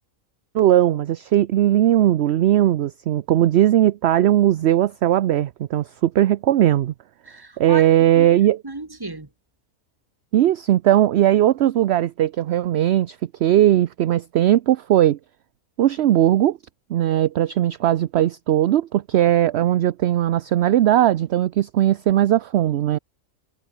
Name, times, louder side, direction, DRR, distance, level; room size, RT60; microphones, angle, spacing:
voice 1, 0.5-6.9 7.6-8.6 10.3-15.2 15.8-16.6 16.9-23.0, right 12 dB, 60° right, 0.8 m, -18 dB
voice 2, 7.3-8.3 8.6-9.3, right 2 dB, 15° right, 1.7 m, -34 dB
omnidirectional pair, 1.4 m